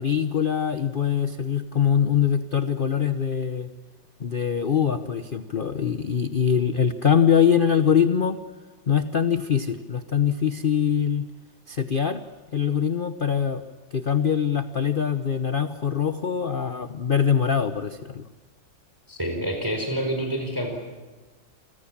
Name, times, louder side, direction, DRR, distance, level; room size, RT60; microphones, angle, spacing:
voice 1, 0.0-3.7 4.2-8.4 8.9-11.3 11.7-12.2 12.5-13.6 13.9-18.3, left 8 dB, 50° left, 10 dB, 0.6 m, -23 dB
voice 2, 19.1-20.8, right 1 dB, 10° right, 3 dB, 4.3 m, -27 dB
29.0 x 24.5 x 7.4 m, 1.3 s
omnidirectional pair, 2.3 m